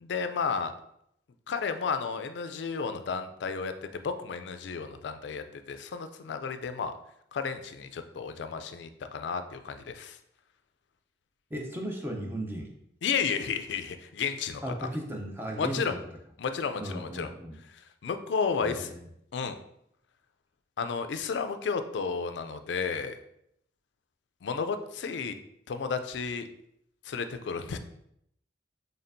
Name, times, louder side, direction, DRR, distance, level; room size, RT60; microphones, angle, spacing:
voice 1, 0.0-0.7 1.5-6.9 7.3-10.2 13.0-14.6 15.6-15.9 16.4-17.3 18.0-18.9 19.3-19.6 20.8-23.2 24.4-25.3 25.7-26.5 27.0-27.8, left 5 dB, 70° left, 9 dB, 0.4 m, -32 dB
voice 2, 11.5-12.7 14.6-16.0 16.8-17.6 18.6-19.0, right 1 dB, 10° right, 1 dB, 0.5 m, -36 dB
4.3 x 3.4 x 2.6 m, 0.75 s
head